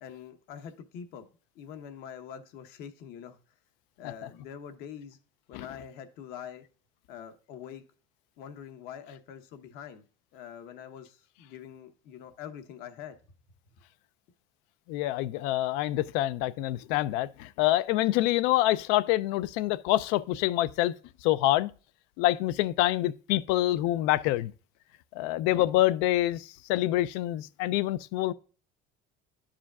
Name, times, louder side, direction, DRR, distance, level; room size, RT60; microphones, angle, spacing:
voice 1, 0.0-1.3 1.6-3.4 4.0-5.2 5.5-6.6 7.1-7.8 8.4-10.0 10.3-13.1, left 8 dB, 60° left, 0.9 m, -44 dB
voice 2, 14.9-20.9 21.2-21.7 22.2-24.5 25.1-28.3, left 15 dB, 75° left, 0.4 m, -26 dB
11.0 x 4.9 x 2.3 m
cardioid pair, 150°, 18 cm